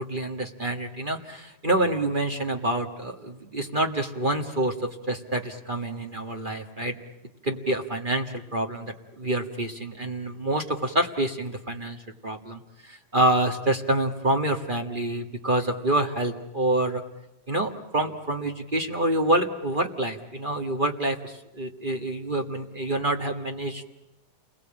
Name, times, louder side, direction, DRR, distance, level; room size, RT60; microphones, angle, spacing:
voice 1, 0.0-7.0 7.4-17.0 17.5-23.8, right 1 dB, 40° right, 3 dB, 0.6 m, -27 dB
29.5 x 22.0 x 8.9 m, 0.91 s
omnidirectional pair, 3.8 m